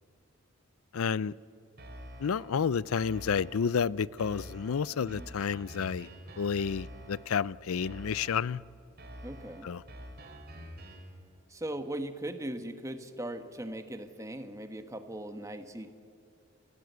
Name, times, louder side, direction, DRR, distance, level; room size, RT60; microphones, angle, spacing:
voice 1, 0.9-1.3 2.2-6.1 6.4-8.6 9.6-9.8, left 6 dB, 80° left, 0.4 m, -30 dB
sound 1, 1.8-2.6 3.0-3.8 4.2-7.4 7.8-8.6 9.0-11.2, equal, 45° right, 3.8 m, -47 dB
voice 2, 5.0-5.3 9.2-9.7 11.5-15.9, right 1 dB, 15° right, 1.2 m, -39 dB
29.0 x 16.5 x 8.1 m
head